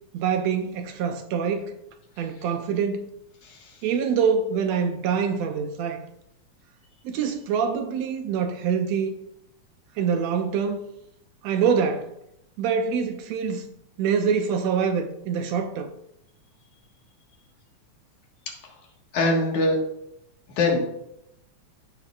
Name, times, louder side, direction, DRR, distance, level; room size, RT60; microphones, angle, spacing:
voice 1, 0.1-1.7 2.2-3.0 3.8-6.0 7.0-9.1 10.0-10.8 11.4-12.1 12.6-13.7 14.0-15.9, right 6 dB, 75° right, 1.7 m, -25 dB
voice 2, 3.4-3.8 18.6-18.8 19.1-19.8 20.6-20.8, left 2 dB, 80° left, 3.0 m, -23 dB
14.0 x 6.2 x 2.4 m
omnidirectional pair, 3.3 m